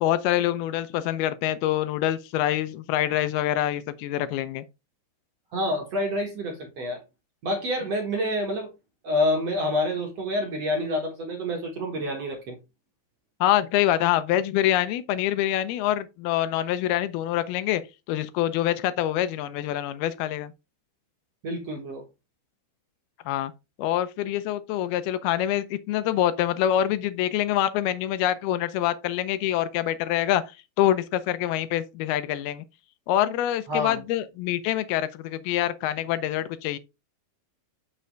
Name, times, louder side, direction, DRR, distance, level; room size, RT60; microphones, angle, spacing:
voice 1, 0.0-4.6 13.4-17.8 18.1-20.5 23.3-23.5 23.8-30.4 30.8-32.6 33.1-36.8, left 12 dB, 80° left, 2.5 m, -25 dB
voice 2, 5.5-7.0 7.4-8.7 9.0-12.6 21.4-22.0 33.7-34.0, left 1 dB, 55° right, 1.9 m, -27 dB
8.2 x 6.2 x 3.3 m
omnidirectional pair, 4.5 m